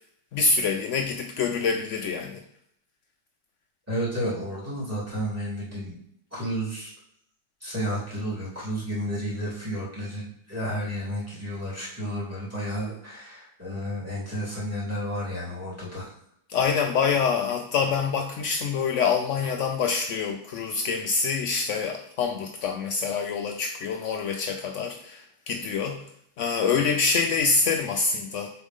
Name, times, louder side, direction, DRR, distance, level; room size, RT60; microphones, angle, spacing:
voice 1, 0.3-2.4 16.5-26.0 26.4-28.5, left 5 dB, 80° left, 4 dB, 0.6 m, -26 dB
voice 2, 3.9-5.9 6.3-6.9 7.6-16.1, equal, 10° right, -8 dB, 2.7 m, -32 dB
7.1 x 4.6 x 3.6 m, 0.69 s
omnidirectional pair, 1.8 m